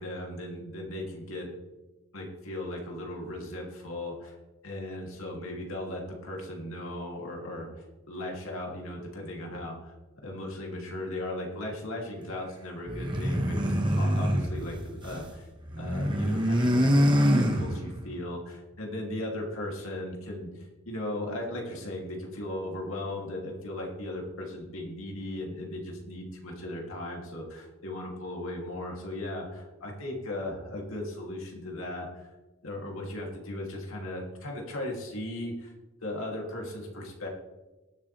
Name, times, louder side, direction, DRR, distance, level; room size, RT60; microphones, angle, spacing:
voice 1, 0.0-1.5 2.1-4.3 4.6-7.7 8.1-9.9 10.2-15.5 15.8-32.3 32.6-35.7 36.0-37.3, left 1 dB, 70° left, -1 dB, 2.8 m, -37 dB
sound 1, 12.9-15.3 15.6-18.1, equal, 20° right, 1.4 m, -25 dB
20.5 x 7.3 x 3.4 m, 1.1 s
head